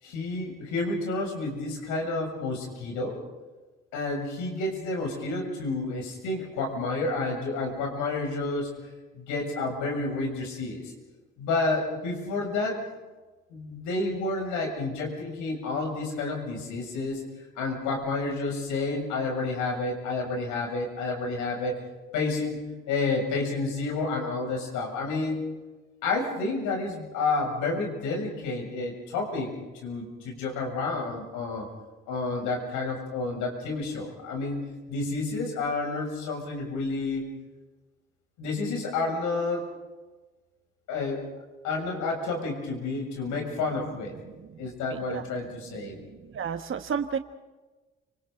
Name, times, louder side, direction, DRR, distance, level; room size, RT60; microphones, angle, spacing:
voice 1, 0.0-3.2 3.9-8.7 9.2-10.9 11.4-12.8 13.5-17.2 17.6-21.8 22.1-22.6 22.9-25.5 26.0-29.5 29.8-31.7 32.1-34.6 34.9-37.2 38.4-39.7 40.9-41.3 41.6-44.2 44.6-46.0, left 3 dB, 75° left, 1 dB, 6.9 m, -30 dB
voice 2, 46.3-47.2, right 7 dB, 40° right, 7 dB, 1.4 m, -30 dB
30.0 x 26.5 x 3.9 m, 1.2 s
hypercardioid pair, 50°, 31 cm